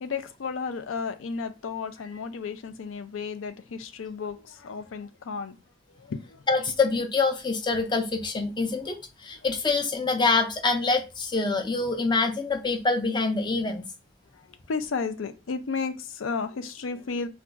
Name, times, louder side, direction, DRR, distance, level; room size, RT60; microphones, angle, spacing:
voice 1, 0.0-5.6 6.0-6.4 14.7-17.3, left 5 dB, 85° left, 0.4 m, -33 dB
voice 2, 6.5-13.9, left 3 dB, 25° left, 0.4 m, -25 dB
2.4 x 2.3 x 3.8 m
head